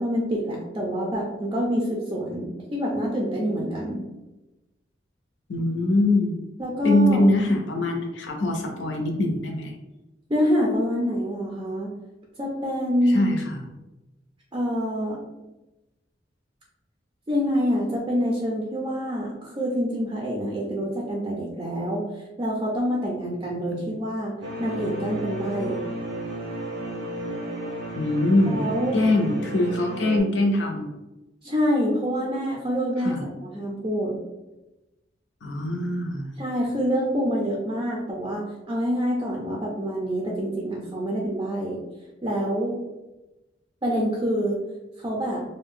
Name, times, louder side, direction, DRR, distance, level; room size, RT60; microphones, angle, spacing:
voice 1, 0.0-4.0 6.6-7.2 10.3-11.9 12.4-13.4 14.5-15.2 17.3-22.0 22.4-24.3 24.6-25.8 28.5-29.0 31.4-34.1 36.4-41.8 42.2-42.8 43.8-44.6 45.0-45.4, equal, 25° right, -2 dB, 0.4 m, -26 dB
voice 2, 5.5-6.4 6.8-9.7 13.1-13.6 23.7-23.8 27.9-28.6 28.9-30.9 33.0-33.2 35.4-36.3, left 1 dB, 80° left, 2 dB, 0.6 m, -23 dB
sound 1, 24.4-30.2, right 1 dB, 85° right, 0.6 m, -33 dB
2.5 x 2.1 x 3.5 m, 1.0 s
head